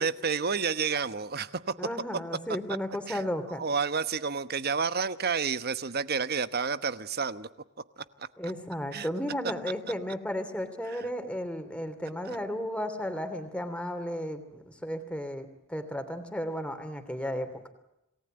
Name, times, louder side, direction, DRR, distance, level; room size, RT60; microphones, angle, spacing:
voice 1, 0.0-1.8 2.5-2.6 3.1-3.2 3.5-7.5 8.0-8.3 8.9-9.1 10.8-11.1 12.2-12.4, right 5 dB, 50° right, 13 dB, 1.1 m, -30 dB
voice 2, 1.8-3.6 8.4-17.5, equal, 5° left, 7 dB, 3.1 m, -34 dB
28.0 x 19.0 x 9.0 m, 0.89 s
head